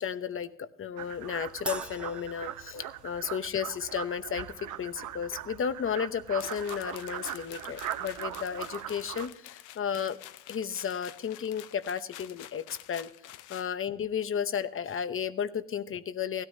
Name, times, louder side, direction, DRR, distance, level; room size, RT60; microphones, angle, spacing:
voice 1, 0.0-10.2 10.5-13.1 13.5-16.5, left 7 dB, 45° left, 13 dB, 0.9 m, -33 dB
sound 1, 1.0-9.3, right 11 dB, 75° right, 0.9 m, -40 dB
Crash cymbal, 1.7-3.3, right 1 dB, 5° right, 0.7 m, -41 dB
sound 2, 6.4-13.7, left 13 dB, 85° left, 0.6 m, -48 dB
16.5 x 13.0 x 2.7 m, 0.76 s
cardioid pair, 90°, 30 cm